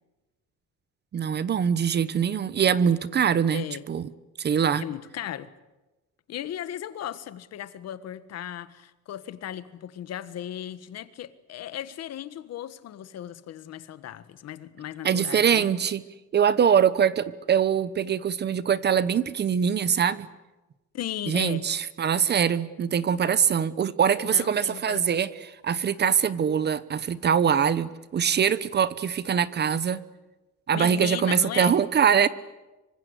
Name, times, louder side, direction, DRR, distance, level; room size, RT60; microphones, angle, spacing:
voice 1, 1.1-4.1 4.4-4.8 15.0-16.0 16.3-20.3 21.3-25.3 25.6-30.0 30.7-32.3, right 7 dB, 35° right, 1.0 m, -23 dB
voice 2, 3.5-3.8 4.8-5.5 6.3-15.7 20.9-21.7 24.3-25.1 30.7-31.8, left 11 dB, 55° left, 1.6 m, -36 dB
26.0 x 25.0 x 8.2 m
cardioid pair, 160°, 31 cm